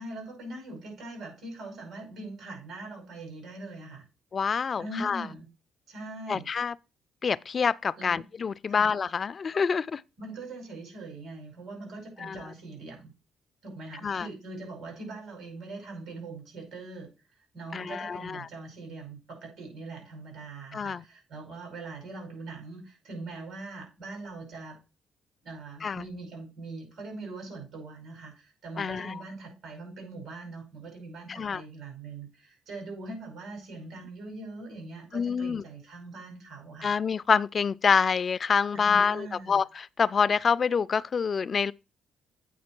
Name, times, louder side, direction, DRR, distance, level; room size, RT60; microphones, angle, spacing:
voice 1, 0.0-4.0 4.8-5.5 5.9-6.4 8.0-8.2 8.7-8.9 10.2-13.1 13.6-24.8 25.4-36.9 38.7-39.6, right 2 dB, 70° right, 5.3 m, -42 dB
voice 2, 4.3-5.3 6.3-6.7 7.2-10.0 12.2-12.4 14.0-14.3 17.7-18.5 20.7-21.0 25.8-26.0 28.8-29.2 31.3-31.6 35.1-35.6 36.8-41.7, left 6 dB, 45° left, 0.3 m, -27 dB
8.5 x 5.1 x 4.4 m
cardioid pair, 90°, 0 cm